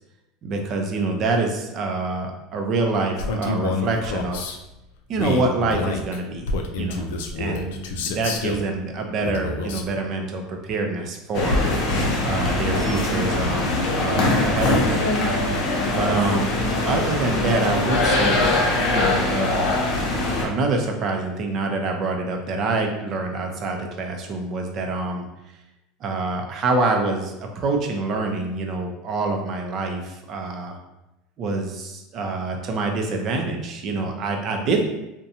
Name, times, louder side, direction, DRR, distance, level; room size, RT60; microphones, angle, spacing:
voice 1, 0.4-4.6 5.1-11.6 12.2-15.1 15.9-16.5 16.9-18.5 18.9-19.7 20.3-25.3 26.0-30.8 31.4-34.8, right 3 dB, 45° right, 3 dB, 0.5 m, -26 dB
Male speech man speaking, 3.2-4.6 5.1-8.7 9.2-9.9, left 3 dB, 85° left, 0.3 m, -28 dB
sound 1, 11.3-20.4, left 2 dB, 60° left, 0.7 m, -22 dB
2.6 x 2.2 x 2.7 m, 0.94 s
supercardioid pair, 120°, 0 cm